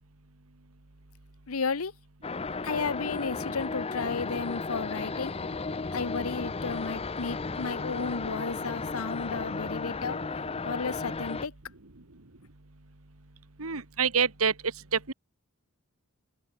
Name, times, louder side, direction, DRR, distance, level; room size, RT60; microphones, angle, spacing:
voice 1, 1.5-1.9 2.6-5.4 5.9-10.2 10.6-11.5, left 4 dB, 85° left, 0.9 m, -33 dB
sound 1, 2.2-11.5, left 4 dB, 30° left, 0.7 m, -34 dB
voice 2, 13.6-14.5 14.9-15.1, right 6 dB, 85° right, 2.0 m, -26 dB
open air
head